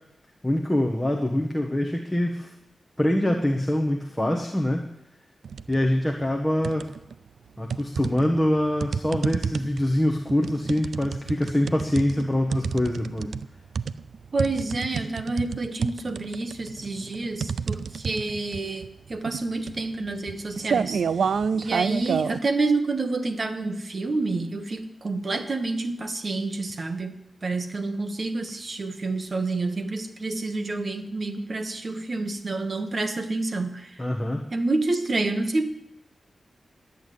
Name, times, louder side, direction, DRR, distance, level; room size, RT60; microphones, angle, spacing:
voice 1, 0.4-2.5 3.0-4.9 5.7-6.9 7.6-13.3 34.0-34.4, left 1 dB, 5° left, 0 dB, 1.2 m, -24 dB
sound 1, 5.4-5.8 6.2-7.1 7.7-22.4, right 6 dB, 90° right, 0.4 m, -29 dB
voice 2, 14.3-27.1 27.4-34.0 34.5-35.7, right 3 dB, 35° right, 6 dB, 1.3 m, -28 dB
11.5 x 8.4 x 9.3 m, 0.79 s
wide cardioid pair, 165°, 0 cm